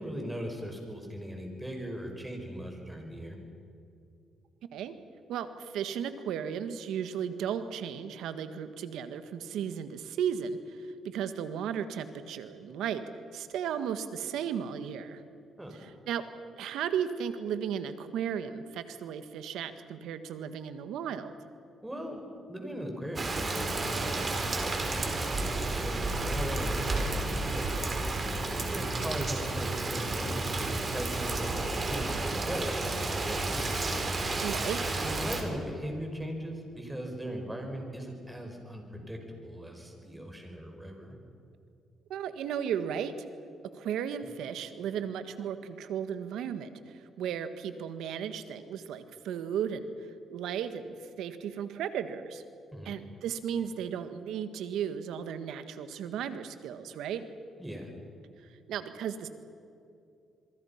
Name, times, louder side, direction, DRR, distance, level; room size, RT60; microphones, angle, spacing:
voice 1, 0.0-3.4 15.6-15.7 21.8-27.8 28.7-31.5 31.9-33.9 35.0-41.2 52.7-53.0 57.6-57.9, equal, 10° right, 2 dB, 5.8 m, -39 dB
voice 2, 5.3-13.0 13.3-15.2 15.7-16.2 16.6-21.3 34.4-34.8 42.1-43.1 43.7-49.9 50.3-52.4 52.8-57.2 58.7-59.3, right 8 dB, 85° right, 10 dB, 1.6 m, -35 dB
Rain, 23.2-35.4, right 2 dB, 35° right, 4.4 m, -31 dB
26.5 x 23.0 x 5.9 m, 2.6 s
cardioid pair, 90°, 0 cm